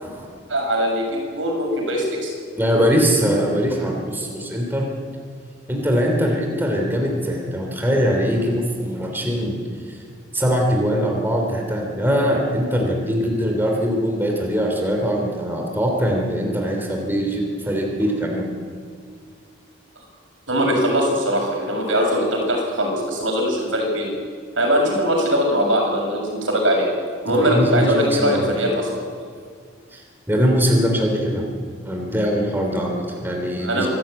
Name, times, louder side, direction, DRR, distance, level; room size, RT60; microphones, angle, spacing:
voice 1, 0.5-2.3 20.5-24.2 24.6-26.9 27.2-29.0 33.6-33.9, equal, 80° right, 0 dB, 7.1 m, -21 dB
voice 2, 2.6-4.9 5.7-9.6 9.9-10.0 10.3-18.5 27.3-28.6 29.9-30.0 30.3-31.4 31.8-33.9, equal, 10° right, 1 dB, 3.0 m, -22 dB
26.0 x 12.5 x 8.9 m, 2.1 s
head